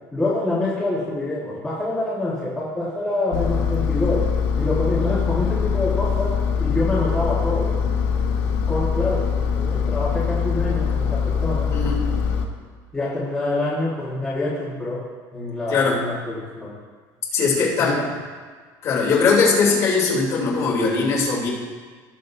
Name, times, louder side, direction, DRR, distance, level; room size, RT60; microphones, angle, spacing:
voice 1, 0.1-4.3 4.6-7.8 8.7-11.7 12.9-15.0 15.3-16.8 17.8-18.1, left 2 dB, 5° left, -9 dB, 1.5 m, -26 dB
Engine, 3.3-12.5, left 6 dB, 80° left, 1.2 m, -23 dB
voice 2, 15.7-16.0 17.3-18.0 18.8-21.5, left 4 dB, 40° left, -6 dB, 3.1 m, -20 dB
18.0 x 7.5 x 2.7 m, 1.5 s
cardioid pair, 170°, 8 cm